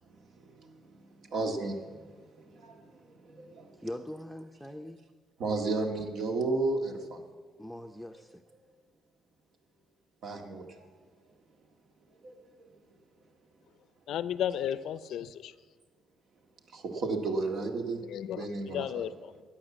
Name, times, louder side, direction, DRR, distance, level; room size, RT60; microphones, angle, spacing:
voice 1, 1.2-2.0 2.4-3.9 5.4-7.2 10.2-10.9 12.2-12.3 16.7-18.0 18.4-19.0 19.3-19.4, right 3 dB, 70° right, 1.8 m, -33 dB
voice 2, 3.8-5.0 7.6-8.4, left 1 dB, ahead, 0.6 m, -41 dB
voice 3, 14.1-15.5 18.1-18.5 18.7-19.3, left 10 dB, 80° left, 0.5 m, -33 dB
13.0 x 9.2 x 7.2 m
cardioid pair, 90°, 0 cm